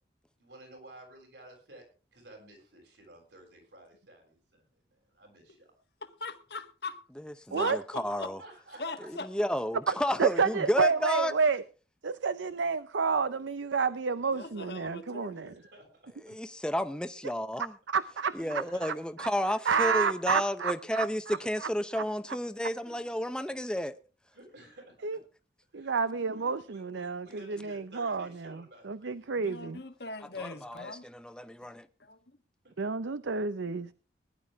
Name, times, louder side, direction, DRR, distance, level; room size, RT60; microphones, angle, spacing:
voice 1, 0.4-1.8 2.1-5.7 8.4-9.1 9.9-10.6 15.3-16.4 18.4-18.9 20.9-21.0 21.3-21.5 22.8-23.0 24.3-25.2 25.7-29.7 30.3-30.6 32.6-32.7, right 1 dB, 70° right, 7.2 m, -53 dB
voice 2, 6.0-7.0 7.5-8.3 8.8-9.3 14.3-15.5 29.4-31.1 32.0-32.4 32.8-33.0, left 3 dB, 60° left, 1.5 m, -41 dB
voice 3, 7.2-8.4 9.1-11.3 16.3-17.7 18.3-23.9 30.4-31.9, equal, 5° left, 0.8 m, -32 dB
voice 4, 10.2-11.6 12.0-15.5 17.9-18.3 19.2-19.3 19.7-21.7 25.0-25.2 25.7-27.3 27.9-28.5 28.9-29.8 32.8-33.9, right 5 dB, 85° right, 0.6 m, -29 dB
19.5 x 11.0 x 3.6 m
head